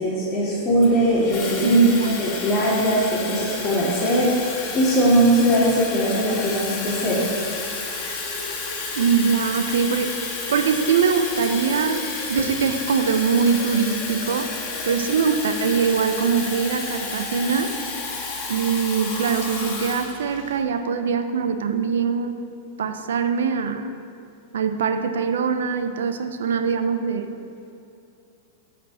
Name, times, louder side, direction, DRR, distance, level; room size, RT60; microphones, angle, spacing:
voice 1, 0.0-1.8 2.0-7.3, equal, 20° left, -10 dB, 2.5 m, -20 dB
Water tap faucet / Fill (with liquid), 0.8-20.6, left 4 dB, 40° left, 2.3 m, -31 dB
voice 2, 1.6-2.2 9.0-10.2 10.5-12.0 12.3-14.5 14.8-17.7 18.5-22.4 22.8-23.9 24.5-27.4, right 6 dB, 80° right, 8 dB, 0.7 m, -22 dB
15.5 x 5.1 x 4.3 m, 2.6 s
hypercardioid pair, 120°, 0 cm